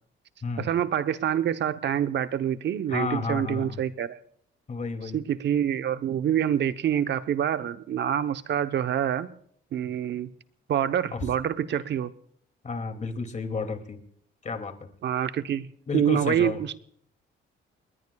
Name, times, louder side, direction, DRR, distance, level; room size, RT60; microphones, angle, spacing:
voice 1, 0.6-4.2 5.0-9.3 9.7-10.3 10.7-12.1 15.0-15.7 15.9-16.8, right 9 dB, 60° right, 10 dB, 0.9 m, -26 dB
voice 2, 2.9-3.8 4.7-5.2 11.1-11.2 12.6-14.0 14.4-14.7 15.9-16.6, left 4 dB, 35° left, 7 dB, 2.6 m, -31 dB
30.0 x 20.5 x 2.4 m, 0.64 s
cardioid pair, 90°, 20 cm